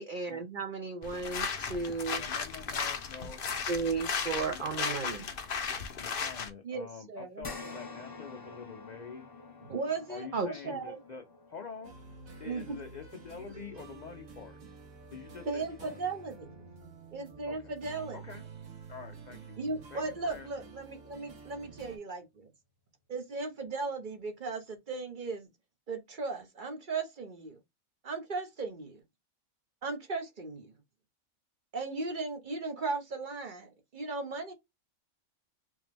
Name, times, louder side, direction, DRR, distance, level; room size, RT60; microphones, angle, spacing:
voice 1, 0.0-2.2 3.7-5.2 10.3-10.5, right 4 dB, 60° right, 0.5 m, -34 dB
sound 1, 1.0-6.5, left 6 dB, 50° left, 0.8 m, -35 dB
voice 2, 2.1-3.4 4.5-5.3 6.0-9.3 10.1-11.2 11.5-11.9 12.4-14.6 15.1-16.0 17.5-17.6 18.1-18.4 18.9-19.6 19.9-20.5, left 6 dB, 70° left, 0.4 m, -46 dB
voice 3, 6.6-7.5 9.6-11.0 12.4-12.8 15.4-16.7 17.1-18.2 19.6-22.5 23.1-25.5 25.9-27.6 28.0-29.0 29.8-30.7 31.7-34.5, right 3 dB, 40° right, 0.8 m, -37 dB
sound 2, 7.4-16.0 16.5-16.6 18.0-18.1, left 3 dB, 20° left, 0.9 m, -49 dB
sound 3, 11.8-22.0, right 4 dB, 80° right, 1.6 m, -50 dB
3.6 x 3.0 x 3.3 m
omnidirectional pair, 1.4 m